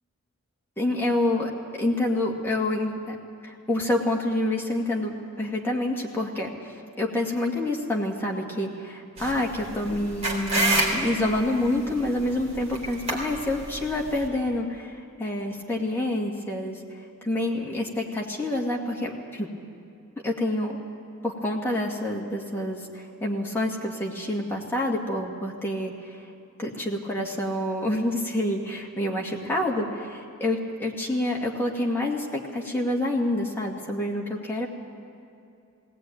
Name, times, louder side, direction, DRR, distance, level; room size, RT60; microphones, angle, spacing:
voice 1, 0.8-1.5 1.8-16.8 17.2-19.5 20.2-20.8 21.2-26.2 26.6-34.7, left 1 dB, 10° left, -2 dB, 2.1 m, -27 dB
sound 1, 9.2-14.3, right 1 dB, 30° right, 3.8 m, -29 dB
19.5 x 18.0 x 9.4 m, 2.6 s
head